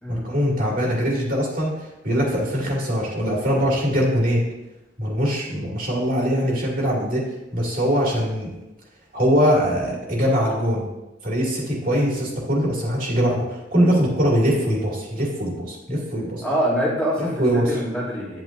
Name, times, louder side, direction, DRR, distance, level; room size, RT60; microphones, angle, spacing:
voice 1, 0.1-4.4 5.0-7.2 7.5-8.5 9.1-10.9 11.2-16.4 17.2-17.8, equal, 50° right, -3 dB, 2.5 m, -22 dB
voice 2, 16.4-18.4, equal, 5° left, -7 dB, 2.3 m, -25 dB
10.5 x 8.6 x 2.6 m, 0.97 s
head